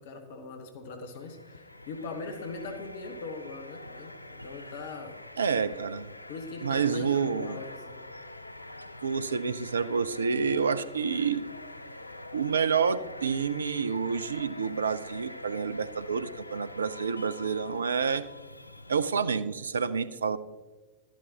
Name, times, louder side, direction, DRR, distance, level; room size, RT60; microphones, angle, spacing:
voice 1, 0.0-5.1 6.3-8.1, left 3 dB, 55° left, 5 dB, 1.3 m, -41 dB
sound 1, 1.1-19.5, left 2 dB, 85° left, 0.4 m, -45 dB
voice 2, 5.4-6.1 6.6-7.6 9.0-11.4 12.3-18.2 18.9-20.4, right 6 dB, 70° right, 14 dB, 0.5 m, -28 dB
12.0 x 11.5 x 2.8 m, 1.2 s
figure-of-eight pair, 90°, 0 cm